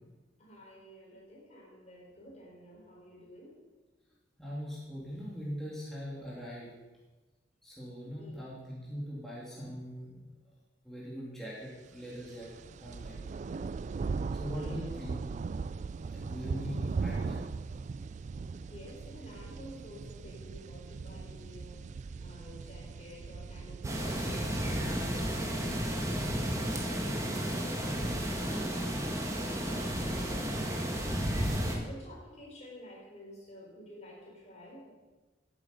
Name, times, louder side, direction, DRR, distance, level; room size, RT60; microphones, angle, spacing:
voice 1, 0.4-3.6 8.0-8.5 14.3-15.0 18.5-26.3 26.9-28.9 29.7-30.9 31.7-34.9, equal, 40° left, -2 dB, 4.1 m, -51 dB
voice 2, 4.4-6.7 7.6-10.2 10.8-13.2 14.4-15.3 15.8-17.4, equal, ahead, -7 dB, 2.6 m, -41 dB
sound 1, 12.2-24.9, right 4 dB, 40° right, 0.3 m, -39 dB
sound 2, 23.8-31.8, equal, 15° right, 1.8 m, -32 dB
14.5 x 8.5 x 5.3 m, 1.2 s
head